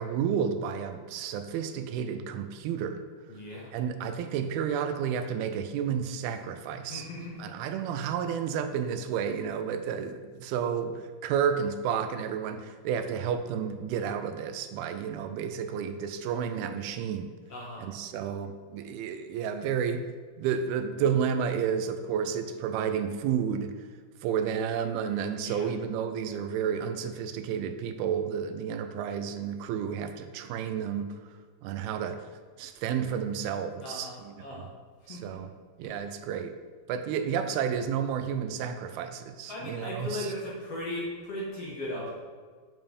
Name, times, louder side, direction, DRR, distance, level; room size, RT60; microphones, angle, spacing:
voice 1, 0.0-3.0 3.7-7.1 7.4-17.3 17.8-20.1 20.4-23.7 24.2-31.2 31.6-32.3 32.6-34.7 35.1-35.5 35.8-36.5 36.9-40.3, right 7 dB, 85° right, 9 dB, 2.5 m, -31 dB
voice 2, 3.3-3.7 6.9-7.5 17.5-17.9 25.3-25.7 33.8-34.7 35.1-35.4 35.8-36.0 39.5-42.1, left 1 dB, 60° left, -4 dB, 1.8 m, -37 dB
9.0 x 5.5 x 5.3 m, 1.5 s
omnidirectional pair, 4.4 m